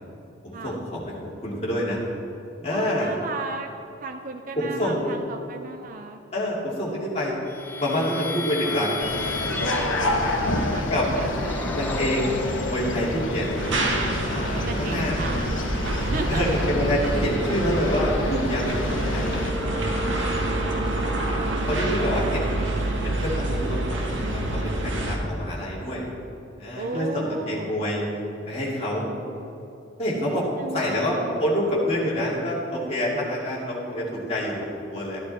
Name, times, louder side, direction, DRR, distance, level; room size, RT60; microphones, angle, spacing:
voice 1, 0.4-1.0 1.4-2.0 2.6-3.1 4.6-5.1 6.3-7.3 7.8-9.0 9.4-9.5 10.9-11.1 11.7-13.7 14.3-15.2 16.3-19.3 20.9-21.3 21.7-22.7 23.0-26.0 26.6-28.0 28.5-29.1 30.0-30.4 30.7-35.2, left 1 dB, 30° left, -6 dB, 2.6 m, -27 dB
voice 2, 2.7-3.7 4.0-6.2 9.6-11.7 14.4-15.7 16.0-16.6 20.1-23.8 26.8-27.7 30.2-31.4, right 3 dB, 45° right, 5 dB, 0.5 m, -36 dB
sound 1, 7.5-12.9 13.5-14.3 14.8-24.0, left 2 dB, 10° left, 0.6 m, -37 dB
sound 2, 9.0-19.5, left 1 dB, 75° left, 1.2 m, -28 dB
sound 3, 13.6-25.2, right 1 dB, 70° right, 1.3 m, -27 dB
12.5 x 11.0 x 4.3 m, 2.8 s
head